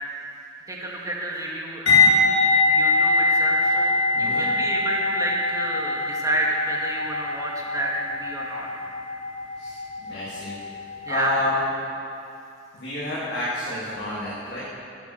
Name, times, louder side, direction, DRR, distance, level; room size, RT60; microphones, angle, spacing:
voice 1, 0.7-2.2 2.7-8.7 11.1-11.4, right 1 dB, 20° right, -3 dB, 2.2 m, -30 dB
sound 1, 1.9-10.8 11.1-11.4, left 3 dB, 85° left, 4.5 m, -22 dB
voice 2, 4.1-4.4 9.6-10.5 11.0-11.6 12.7-14.6, left 1 dB, 60° left, -8 dB, 3.0 m, -29 dB
16.0 x 11.0 x 6.7 m, 2.6 s
head